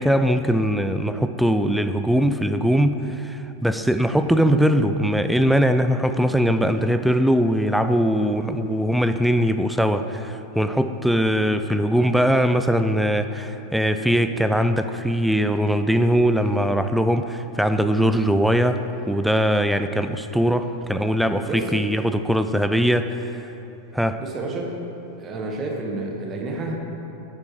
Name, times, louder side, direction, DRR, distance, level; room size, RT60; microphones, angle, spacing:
voice 1, 0.0-23.5 23.9-24.2, equal, ahead, 9 dB, 0.3 m, -21 dB
voice 2, 24.2-24.8 25.2-26.8, right 2 dB, 25° right, 0 dB, 1.1 m, -29 dB
9.0 x 5.1 x 4.9 m, 3.0 s
figure-of-eight pair, 90°, 0 cm